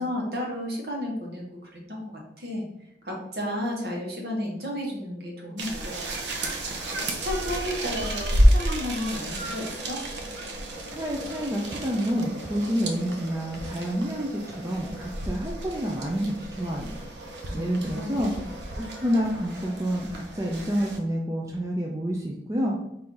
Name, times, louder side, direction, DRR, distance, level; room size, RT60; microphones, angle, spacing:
voice 1, 0.0-2.7 3.0-6.5 7.1-10.0 17.5-18.5, left 1 dB, 60° right, -1 dB, 1.2 m, -33 dB
sound 1, 5.6-21.0, equal, 75° right, 0.6 m, -30 dB
voice 2, 10.9-18.3 18.8-22.8, equal, 15° right, -2 dB, 0.4 m, -29 dB
4.4 x 2.6 x 3.7 m, 0.80 s
head